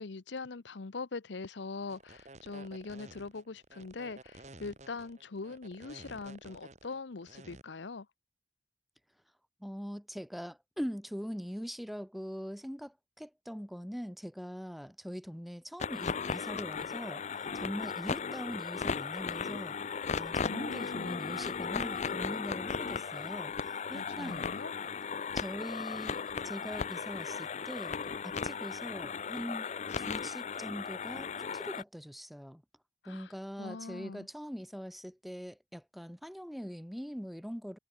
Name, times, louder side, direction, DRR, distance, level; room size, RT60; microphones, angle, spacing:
voice 1, 0.0-8.1 20.5-21.3 23.9-24.7 33.0-33.3 33.6-34.3, left 4 dB, 75° left, 0.8 m, -42 dB
sound 1, 1.8-7.6, right 2 dB, 40° right, 4.1 m, -52 dB
voice 2, 9.6-19.8 20.1-24.5 25.3-28.0 28.2-29.7 30.0-32.6 33.0-37.8, equal, ahead, 1.3 m, -42 dB
sound 2, 15.8-31.8, left 6 dB, 40° left, 0.5 m, -36 dB
head